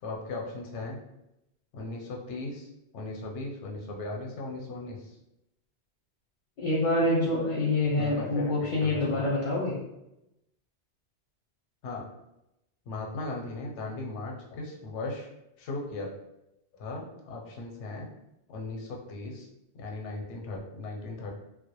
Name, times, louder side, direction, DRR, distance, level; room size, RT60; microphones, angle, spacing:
voice 1, 0.0-1.0 1.7-5.2 7.9-9.3 11.8-12.1 12.9-15.3 15.6-16.1 16.7-18.1 18.5-19.5 19.7-21.3, left 2 dB, 85° left, 0 dB, 0.9 m, -37 dB
voice 2, 6.6-9.8, left 2 dB, 55° left, -5 dB, 0.6 m, -26 dB
2.1 x 2.1 x 2.9 m, 0.89 s
omnidirectional pair, 1.2 m